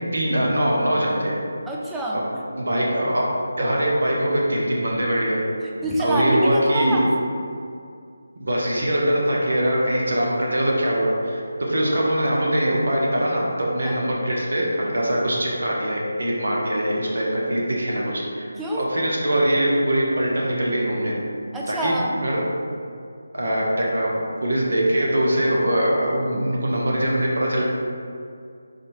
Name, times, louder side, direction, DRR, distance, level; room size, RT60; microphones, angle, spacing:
voice 1, 0.1-1.4 2.6-3.2 3.6-5.4 6.0-7.0 8.4-11.4 11.7-18.5 18.8-21.1 21.7-21.9 22.2-22.4 23.3-27.6, right 1 dB, 70° right, -3 dB, 1.0 m, -22 dB
voice 2, 1.6-2.4 5.6-7.1 11.5-11.6 13.9-14.0 18.6-18.9 21.5-22.2, right 1 dB, 5° right, -4 dB, 0.4 m, -26 dB
4.1 x 2.7 x 3.2 m, 2.3 s
figure-of-eight pair, 160°, 0 cm